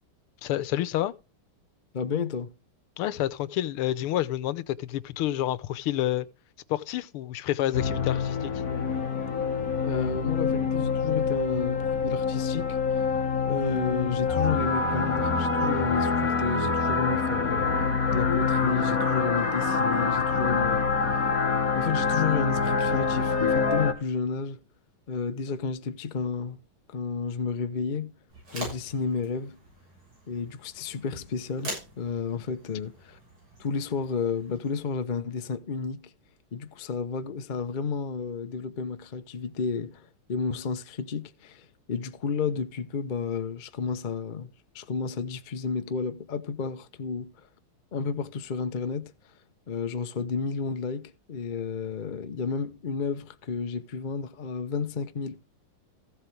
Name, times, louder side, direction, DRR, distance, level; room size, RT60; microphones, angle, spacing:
voice 1, 0.4-1.1 3.0-6.3 6.7-8.5, left 13 dB, 85° left, 1.7 m, -29 dB
voice 2, 1.9-2.5 9.8-13.0 13.5-21.2 21.7-24.6 25.1-26.6 26.9-28.1 28.5-29.6 30.3-33.2 33.6-36.1 36.5-47.5 47.9-49.1 49.7-55.4, left 5 dB, 70° left, 0.4 m, -31 dB
sound 1, 7.7-23.9, left 5 dB, 45° left, 2.0 m, -26 dB
sound 2, 28.3-34.7, right 1 dB, 70° right, 8.2 m, -43 dB
15.0 x 7.9 x 3.3 m
omnidirectional pair, 2.3 m